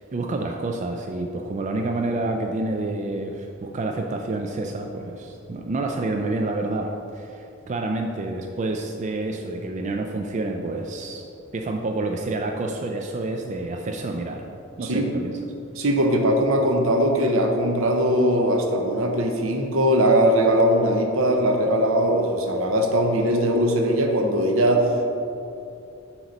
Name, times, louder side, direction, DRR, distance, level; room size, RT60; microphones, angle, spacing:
voice 1, 0.1-11.2 11.5-14.4 14.8-15.4, right 2 dB, 35° right, 2 dB, 0.3 m, -28 dB
voice 2, 15.8-25.0, equal, 70° right, 3 dB, 0.8 m, -20 dB
7.7 x 3.0 x 5.2 m, 2.7 s
head